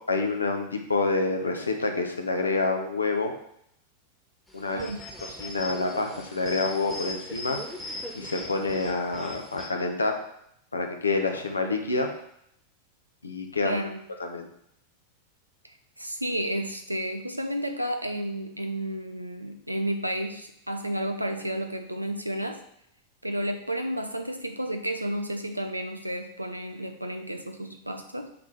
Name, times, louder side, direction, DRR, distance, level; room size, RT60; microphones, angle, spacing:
voice 1, 0.1-3.3 4.5-4.8 5.4-7.6 8.1-10.1 10.7-12.1 13.2-13.8 14.2-14.5, left 3 dB, 75° left, 4 dB, 0.9 m, -27 dB
sound 1, 4.5-9.7, left 1 dB, 5° left, 1.4 m, -39 dB
voice 2, 4.7-5.0 13.6-14.0 15.6-22.6 23.2-28.3, right 1 dB, 85° right, 5 dB, 0.6 m, -32 dB
7.0 x 3.4 x 4.7 m, 0.73 s
figure-of-eight pair, 90°, 0 cm